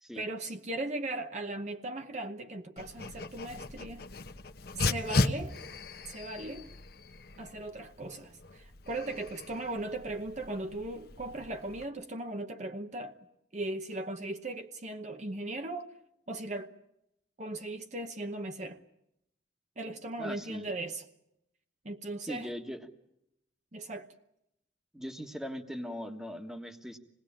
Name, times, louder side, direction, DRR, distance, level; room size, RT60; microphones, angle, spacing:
voice 1, 0.1-4.0 4.7-5.6 6.1-6.7 7.4-13.2 13.5-15.9 16.3-16.7 17.4-18.8 19.8-21.0 21.8-22.5 23.7-24.1, right 2 dB, 40° right, 0.9 m, -38 dB
Dog, 2.8-11.8, left 3 dB, 55° left, 1.1 m, -37 dB
voice 2, 20.2-20.7 22.3-22.9 24.9-27.0, equal, 5° right, 1.4 m, -40 dB
26.5 x 19.5 x 8.8 m
head